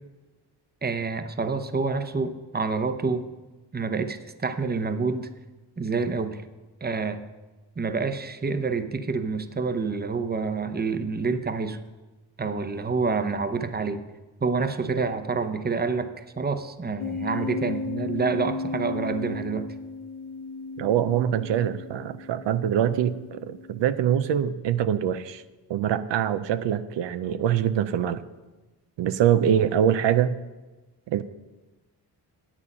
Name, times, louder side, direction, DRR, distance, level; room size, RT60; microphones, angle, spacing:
voice 1, 0.8-3.3 3.7-5.3 5.8-6.4 6.8-7.2 7.8-11.8 12.4-14.0 14.4-19.7, right 4 dB, 20° right, 10 dB, 0.8 m, -28 dB
sound 1, 17.0-24.0, left 3 dB, 65° left, 0.9 m, -35 dB
voice 2, 20.8-25.4 25.7-28.2 29.0-30.3 31.1-31.2, right 9 dB, 90° right, 12 dB, 0.6 m, -24 dB
10.0 x 8.4 x 5.5 m, 1.2 s
cardioid pair, 80°, 42 cm